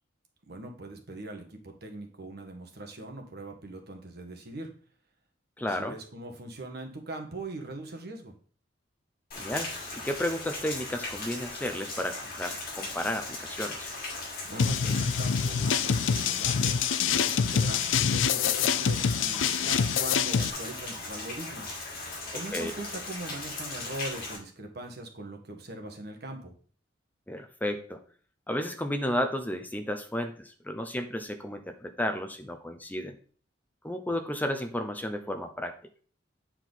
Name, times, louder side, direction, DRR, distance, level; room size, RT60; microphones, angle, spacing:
voice 1, 0.5-4.7 5.6-8.3 14.5-22.1 22.3-26.5, right 2 dB, 60° right, 4 dB, 1.5 m, -41 dB
voice 2, 5.6-5.9 9.4-9.7 10.0-13.9 22.5-22.7 27.3-28.0 28.5-33.2 33.8-35.8, left 1 dB, 10° left, 7 dB, 0.6 m, -32 dB
Rain, 9.3-24.4, left 2 dB, 55° left, 2.5 m, -38 dB
sound 1, 14.6-20.5, left 7 dB, 85° left, 0.4 m, -26 dB
8.9 x 4.5 x 4.0 m, 0.43 s
head